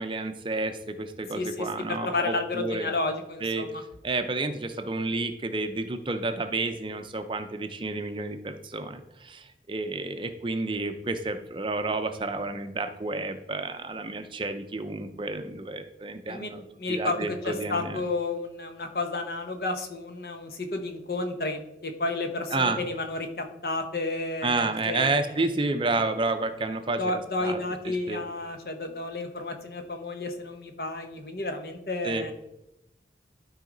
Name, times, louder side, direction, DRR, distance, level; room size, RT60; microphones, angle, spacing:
voice 1, 0.0-2.9 3.4-3.7 4.0-16.6 16.9-18.0 22.5-22.8 24.4-27.6 28.1-28.2 32.0-32.3, right 3 dB, 30° right, 8 dB, 0.5 m, -30 dB
voice 2, 1.3-3.8 16.3-16.5 16.8-25.2 27.0-32.3, left 2 dB, 55° left, 5 dB, 1.0 m, -31 dB
12.0 x 4.8 x 3.9 m, 0.91 s
head